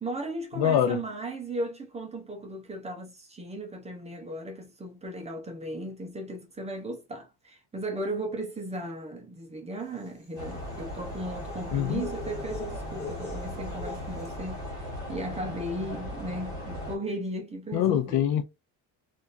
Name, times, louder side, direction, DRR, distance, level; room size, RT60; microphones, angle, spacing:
voice 1, 0.0-18.2, right 1 dB, 15° right, 0.7 m, -36 dB
voice 2, 0.5-1.0 11.7-12.1 17.7-18.4, left 10 dB, 65° left, 0.6 m, -24 dB
sound 1, 9.9-14.5, left 3 dB, 25° left, 0.8 m, -42 dB
sound 2, 10.4-17.0, left 1 dB, 10° left, 1.9 m, -37 dB
3.4 x 2.6 x 2.5 m
cardioid pair, 160°, 39 cm